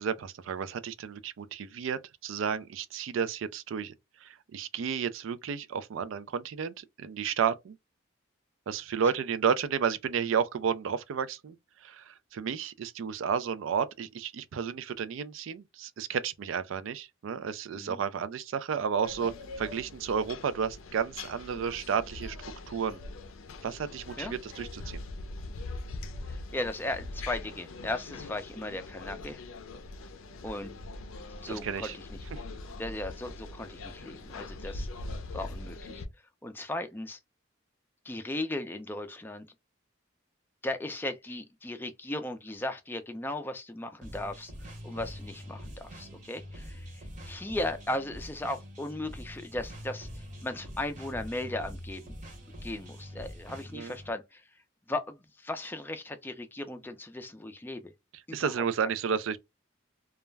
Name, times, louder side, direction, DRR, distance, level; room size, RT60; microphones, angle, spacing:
voice 1, 0.0-3.9 4.2-7.8 8.7-11.5 11.8-19.3 19.6-22.4 22.7-23.0 23.6-25.0 31.5-32.0 32.3-32.4 53.7-54.0 58.3-59.4, right 7 dB, 70° right, 0.3 m, -32 dB
sound 1, 19.0-36.1, left 2 dB, 80° left, 0.4 m, -42 dB
voice 2, 26.3-29.4 30.4-30.7 31.4-32.2 32.8-34.9 35.3-35.9 36.4-37.2 38.0-39.5 40.6-44.5 44.8-46.9 47.2-50.1 50.4-52.1 52.6-54.4 54.9-57.9 58.3-58.5, left 1 dB, 10° left, 0.3 m, -36 dB
sound 2, 44.0-54.1, equal, 35° right, 0.8 m, -44 dB
2.3 x 2.0 x 3.2 m
head